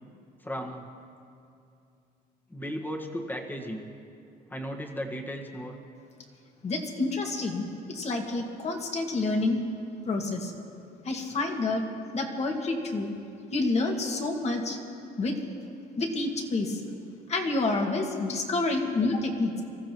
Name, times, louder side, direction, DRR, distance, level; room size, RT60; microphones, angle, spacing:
voice 1, 0.4-0.9 2.5-3.9 4.5-5.8, equal, 10° left, 1 dB, 1.6 m, -35 dB
voice 2, 6.6-9.6 10.1-10.5 11.0-11.8 12.1-13.1 13.5-14.8 15.2-15.4 16.0-16.8 17.3-19.6, left 2 dB, 40° left, 2 dB, 2.1 m, -28 dB
25.5 x 14.5 x 3.1 m, 2.6 s
cardioid pair, 110°, 17 cm